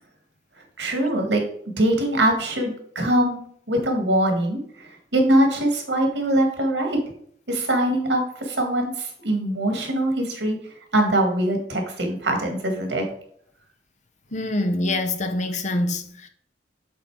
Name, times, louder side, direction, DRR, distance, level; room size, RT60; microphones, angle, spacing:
voice 1, 0.8-1.4 1.8-3.4 3.7-7.0 7.5-10.6 10.9-13.1, right 1 dB, 80° right, 1.8 m, -22 dB
voice 2, 14.3-16.3, left 2 dB, 40° left, 0.7 m, -25 dB
8.0 x 4.0 x 4.7 m
head